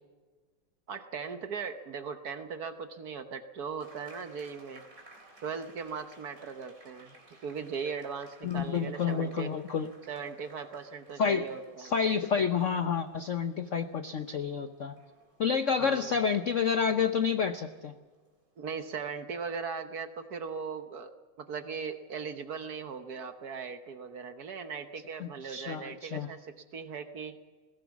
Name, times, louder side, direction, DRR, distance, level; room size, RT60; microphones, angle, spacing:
voice 1, 0.9-4.8 5.4-7.1 7.4-9.5 10.1-11.9 15.8-16.1 18.6-21.1 21.4-27.4, right 6 dB, 55° right, 8 dB, 1.3 m, -39 dB
sound 1, 3.8-18.7, right 2 dB, 35° right, 4.1 m, -59 dB
voice 2, 8.4-9.9 11.2-11.4 11.8-15.0 15.4-17.9 25.2-26.3, left 6 dB, 75° left, 9 dB, 0.7 m, -29 dB
21.0 x 17.5 x 7.2 m, 1.4 s
omnidirectional pair, 2.4 m